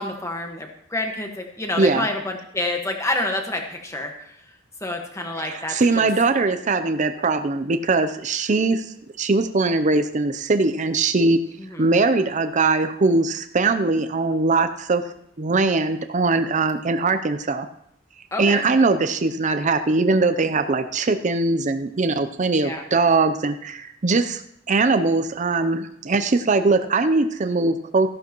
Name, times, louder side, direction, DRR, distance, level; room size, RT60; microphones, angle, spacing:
voice 1, 0.0-4.4 4.8-6.1 11.6-11.9 18.3-18.6 22.5-22.9, left 2 dB, 15° left, 2 dB, 1.5 m, -28 dB
voice 2, 5.4-11.4 11.8-15.0 15.4-17.7 18.4-24.4 24.7-28.1, right 3 dB, 40° right, 9 dB, 0.5 m, -21 dB
14.0 x 11.0 x 3.0 m, 0.73 s
head